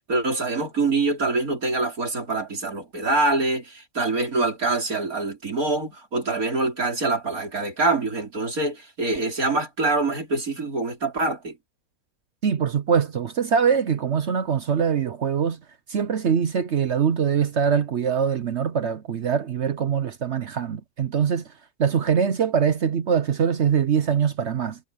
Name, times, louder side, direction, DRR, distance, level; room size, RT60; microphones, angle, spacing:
voice 1, 0.1-11.6, right 3 dB, 75° right, 4.7 m, -25 dB
voice 2, 12.4-15.6 15.9-21.4 21.8-24.8, right 7 dB, 55° right, 1.0 m, -23 dB
omnidirectional pair, 1.5 m